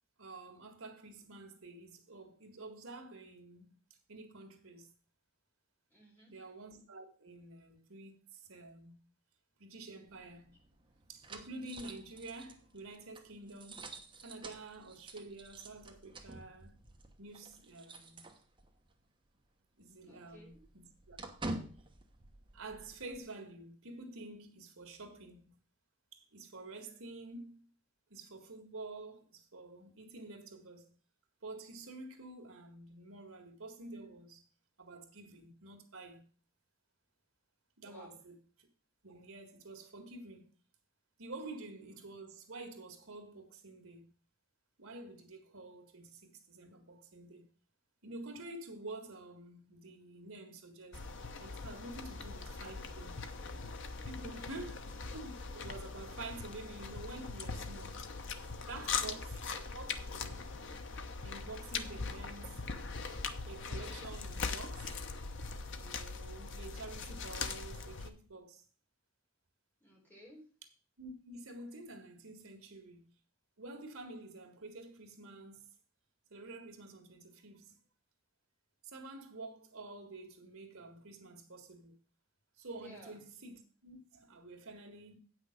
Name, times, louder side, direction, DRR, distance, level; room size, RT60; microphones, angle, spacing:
voice 1, 0.2-3.7 4.1-4.9 6.3-9.0 9.6-10.5 11.1-13.9 14.2-16.8 17.2-18.2 19.8-21.2 22.5-25.5 26.1-27.6 28.1-30.8 31.4-34.4 34.8-36.2 37.8-38.7 39.0-40.5 41.2-44.1 44.8-47.4 48.0-51.0 51.4-53.1 54.1-58.0 58.6-59.3 59.7-60.4 61.2-62.6 63.4-65.0 65.8-68.6 71.0-73.0 73.6-75.7 76.3-77.8 78.8-82.0 82.6-85.1, right 2 dB, 75° right, 1.9 m, -49 dB
voice 2, 5.9-6.4 20.0-20.5 26.8-27.0 37.8-38.2 51.9-52.0 54.3-54.7 58.7-59.2 69.8-70.4 82.8-83.2, equal, 10° left, 4.1 m, -57 dB
sound 1, 10.1-18.9 19.2-19.4 19.7-23.2, right 2 dB, 20° right, 1.2 m, -49 dB
sound 2, 50.9-68.1, left 4 dB, 55° left, 0.9 m, -41 dB
8.8 x 6.2 x 6.5 m
head